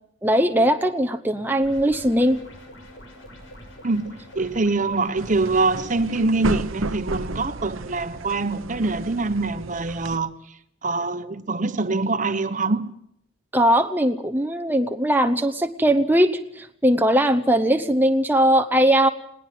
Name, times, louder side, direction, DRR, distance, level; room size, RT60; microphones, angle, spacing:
voice 1, 0.2-2.4 13.5-19.1, right 1 dB, 10° right, 0.9 m, -20 dB
sound 1, 1.6-6.0, equal, 70° left, 6.5 m, -44 dB
voice 2, 3.8-10.3 10.8-12.9, right 3 dB, 40° right, 1.1 m, -24 dB
sound 2, 5.2-10.2, right 3 dB, 80° right, 1.0 m, -33 dB
20.5 x 18.5 x 7.7 m
head